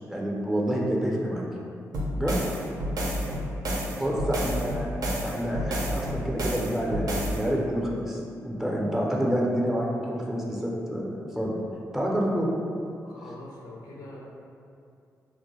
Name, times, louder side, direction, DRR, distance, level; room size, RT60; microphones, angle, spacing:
voice 1, 0.0-1.4 2.1-2.4 4.0-4.9 5.2-11.1 11.4-11.6 11.9-12.5, equal, 5° right, -3 dB, 0.5 m, -28 dB
sound 1, 1.9-7.4, equal, 65° right, 0.4 m, -30 dB
voice 2, 3.0-4.3 13.0-14.2, left 1 dB, 75° left, -4 dB, 0.5 m, -45 dB
2.2 x 2.1 x 2.9 m, 2.5 s
supercardioid pair, 50°, 7 cm